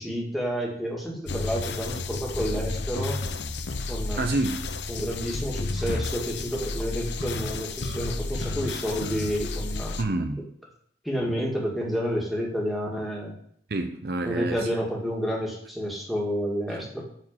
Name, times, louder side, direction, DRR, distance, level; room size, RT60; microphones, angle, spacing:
voice 1, 0.0-3.2 3.9-4.2 4.9-10.0 11.0-13.3 14.2-17.0, equal, ahead, 2.0 m, -30 dB
sound 1, 1.3-10.0, left 3 dB, 75° left, 0.8 m, -32 dB
voice 2, 4.2-4.7 10.0-10.4 13.7-14.7 16.7-16.9, right 2 dB, 55° right, 0.7 m, -28 dB
8.9 x 4.5 x 7.2 m
head